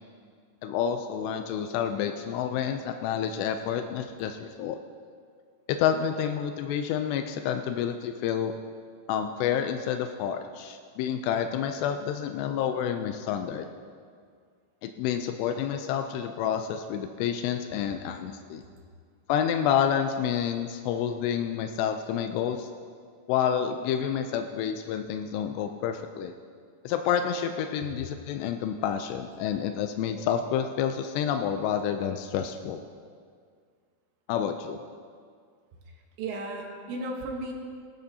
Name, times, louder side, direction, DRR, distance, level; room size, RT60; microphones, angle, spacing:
voice 1, 0.6-4.8 5.7-8.5 9.1-13.7 14.8-18.6 19.3-22.7 23.3-26.3 26.8-32.8 34.3-34.8, left 8 dB, 90° left, 6 dB, 2.4 m, -29 dB
voice 2, 36.2-37.5, right 2 dB, 75° right, 1 dB, 3.2 m, -34 dB
17.5 x 13.0 x 2.8 m, 2.1 s
omnidirectional pair, 5.4 m